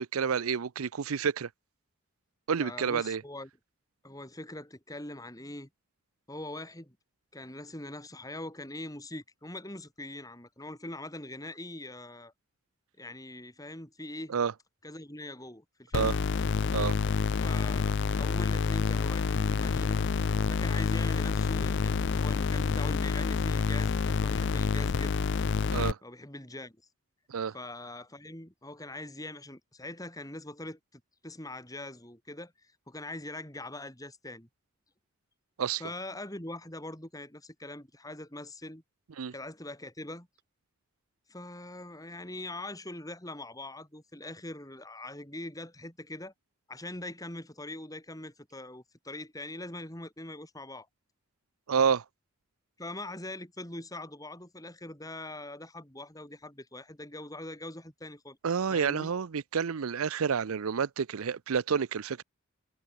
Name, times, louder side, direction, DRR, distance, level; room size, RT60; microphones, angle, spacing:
voice 1, 0.0-1.5 2.5-3.2 14.3-14.5 15.9-16.2 16.7-17.0 25.7-26.0 27.3-27.5 35.6-35.8 39.2-39.3 51.7-52.0 58.4-62.2, right 6 dB, 80° right, 0.5 m, -29 dB
voice 2, 2.6-3.5 4.0-5.7 6.3-7.0 7.3-12.3 13.0-14.3 14.8-16.1 17.4-20.0 20.5-25.2 26.0-26.8 27.5-34.5 35.8-38.8 39.3-40.3 41.3-46.3 46.7-50.9 52.8-59.1, left 1 dB, 15° left, 5.1 m, -42 dB
sound 1, 15.9-25.9, left 5 dB, 55° left, 0.4 m, -28 dB
head